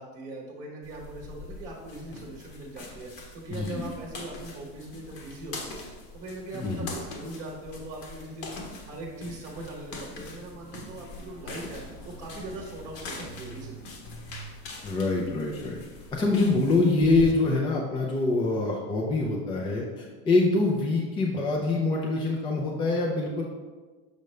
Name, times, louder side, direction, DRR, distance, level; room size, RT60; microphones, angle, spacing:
voice 1, 0.0-13.8, right 2 dB, 25° right, -2 dB, 1.0 m, -41 dB
sound 1, 0.8-17.3, left 2 dB, 40° left, 1.1 m, -42 dB
voice 2, 3.5-3.8 6.5-6.9 14.8-15.7 16.1-23.4, left 3 dB, 15° left, -2 dB, 0.5 m, -25 dB
6.7 x 5.1 x 3.2 m, 1.4 s
supercardioid pair, 150°, 33 cm